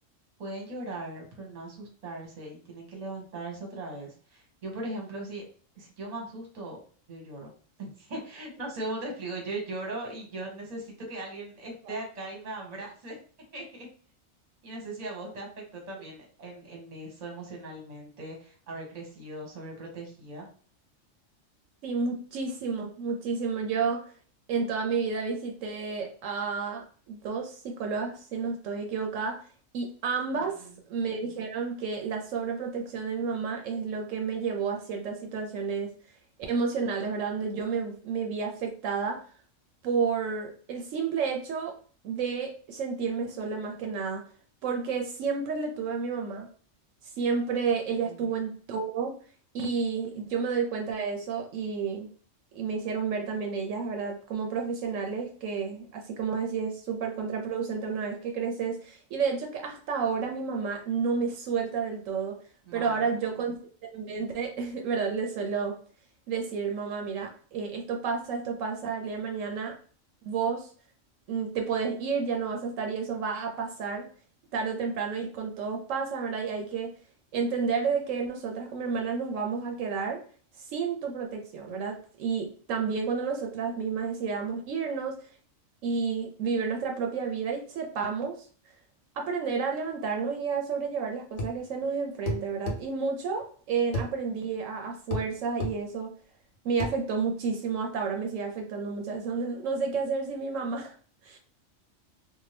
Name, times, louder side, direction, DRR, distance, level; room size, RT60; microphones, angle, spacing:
voice 1, 0.4-5.4 5.7-6.8 7.1-7.5 7.8-13.2 13.5-13.9 14.6-20.5 30.4-30.8 48.0-48.3 62.7-63.3, right 2 dB, 35° right, 0 dB, 0.9 m, -39 dB
voice 2, 21.8-24.0 24.5-29.4 29.7-35.9 36.5-39.2 39.8-41.7 42.0-44.2 44.6-46.5 47.2-49.1 49.5-52.1 52.5-62.4 62.7-63.6 63.9-65.8 66.3-69.8 70.2-70.7 71.3-74.1 74.5-76.9 77.3-80.2 80.6-85.2 85.8-88.5 89.2-96.1 96.6-100.9 101.2-101.4, right 5 dB, 75° right, 2 dB, 0.9 m, -31 dB
sound 1, 91.4-91.6 92.3-92.8 93.9-94.1 95.1-95.3 95.6-95.8 96.8-97.0, left 1 dB, 80° left, 1.1 m, -31 dB
2.7 x 2.3 x 3.2 m, 0.43 s
omnidirectional pair, 1.4 m